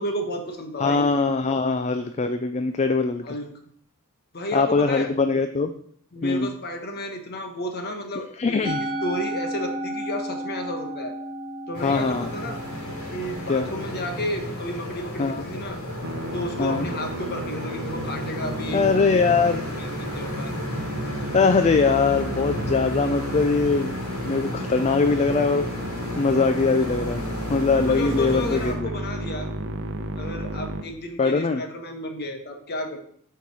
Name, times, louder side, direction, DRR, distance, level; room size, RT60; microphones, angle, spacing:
voice 1, 0.0-1.0 3.2-3.5 4.3-5.1 6.1-8.6 9.0-11.1 11.7-12.6 13.1-15.8 16.3-20.5 27.8-29.5 30.2-33.0, equal, 45° left, 5 dB, 1.3 m, -32 dB
voice 2, 0.8-3.2 4.5-5.7 6.2-6.5 8.4-8.8 11.8-12.3 13.5-13.7 15.2-15.4 16.6-16.9 18.7-19.6 21.3-23.9 24.2-25.7 26.2-28.9 31.2-31.6, left 4 dB, 30° left, 8 dB, 0.4 m, -22 dB
Musical instrument, 8.6-15.0, right 1 dB, 25° right, 1.0 m, -33 dB
sound 1, 11.7-28.7, left 1 dB, 80° left, 2.7 m, -34 dB
Musical instrument 2, 16.0-30.8, right 1 dB, 55° right, 0.8 m, -33 dB
8.5 x 4.6 x 5.4 m, 0.63 s
head